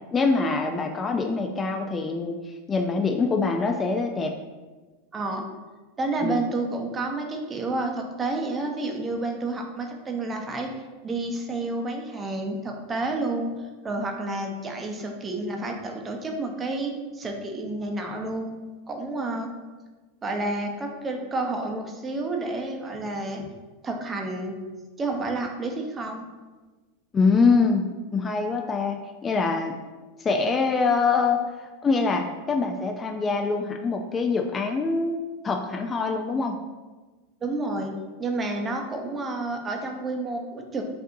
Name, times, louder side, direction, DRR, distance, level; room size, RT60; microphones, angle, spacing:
voice 1, 0.1-4.3 6.2-6.4 27.1-29.7 30.2-35.2 35.4-36.6, left 4 dB, 20° left, 3 dB, 0.3 m, -24 dB
voice 2, 5.1-5.4 6.0-10.7 11.0-13.5 13.8-18.6 18.9-19.5 20.2-23.5 23.8-24.5 25.0-26.3 37.4-37.9 38.2-40.8, right 2 dB, 20° right, 2 dB, 0.7 m, -30 dB
7.6 x 2.6 x 2.6 m, 1.3 s
supercardioid pair, 120°, 0 cm